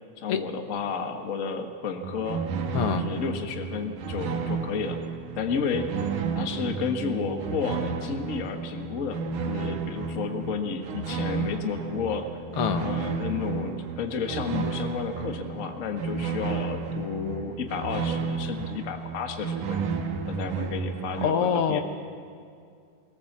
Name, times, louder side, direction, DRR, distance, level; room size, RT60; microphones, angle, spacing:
voice 1, 0.2-2.4 2.9-5.0 5.3-6.0 6.3-12.2 12.8-19.8 20.3-21.8, left 5 dB, 45° left, 4 dB, 1.1 m, -32 dB
sound 1, 2.0-21.3, right 5 dB, 75° right, 2.7 m, -32 dB
voice 2, 2.7-3.0 12.6-12.9 21.2-21.8, left 7 dB, 65° left, 7 dB, 1.5 m, -24 dB
23.0 x 17.0 x 7.4 m, 2.3 s
omnidirectional pair, 3.7 m